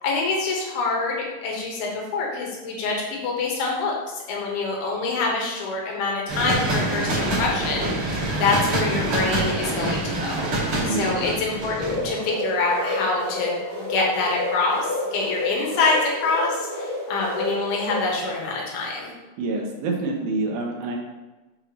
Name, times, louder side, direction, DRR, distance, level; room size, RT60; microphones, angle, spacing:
voice 1, 0.0-4.0 4.3-7.9 8.4-10.5 10.8-19.1, left 3 dB, 75° left, -2 dB, 3.1 m, -25 dB
sound 1, 6.3-12.1, right 1 dB, 45° right, 2.0 m, -25 dB
voice 2, 10.9-11.3 19.4-21.0, right 2 dB, 75° right, 0 dB, 2.5 m, -27 dB
sound 2, 11.8-18.0, left 2 dB, 25° left, 1.0 m, -30 dB
6.9 x 5.5 x 2.9 m, 1.2 s
omnidirectional pair, 4.6 m